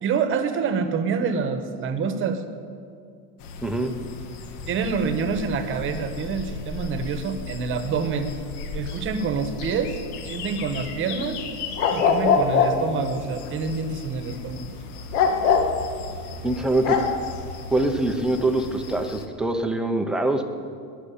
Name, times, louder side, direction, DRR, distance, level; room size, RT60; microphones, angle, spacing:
voice 1, 0.0-2.4 4.7-8.4 8.7-10.0 10.2-11.4 11.9-14.8, right 5 dB, 25° right, 8 dB, 1.2 m, -27 dB
sound 1, 3.4-19.2, left 5 dB, 80° left, 1.9 m, -28 dB
voice 2, 3.6-3.9 16.4-17.0 17.7-20.4, right 2 dB, ahead, 5 dB, 0.6 m, -24 dB
20.0 x 6.7 x 9.9 m, 2.3 s
supercardioid pair, 165°, 45 cm